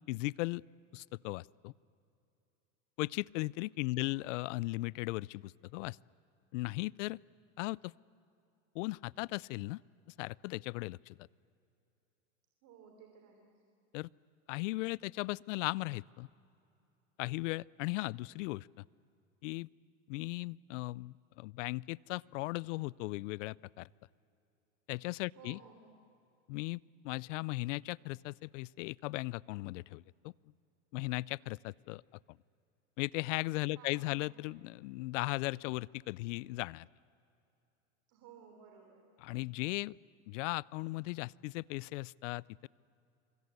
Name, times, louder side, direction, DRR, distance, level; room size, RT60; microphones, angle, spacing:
voice 1, 0.1-0.6 0.9-1.7 3.0-6.0 6.5-7.2 7.6-7.9 8.7-9.8 10.2-11.1 13.9-14.1 14.5-16.3 17.2-18.8 19.4-19.7 20.1-23.9 24.9-25.6 26.5-30.3 30.9-32.0 33.0-36.9 39.2-40.0 40.3-42.7, left 21 dB, 65° left, 25 dB, 0.5 m, -37 dB
voice 2, 12.6-13.6 25.3-26.0 33.7-34.2 38.1-39.1, right 6 dB, 50° right, 3 dB, 3.3 m, -57 dB
25.5 x 24.5 x 8.2 m, 2.7 s
supercardioid pair, 120°, 40 cm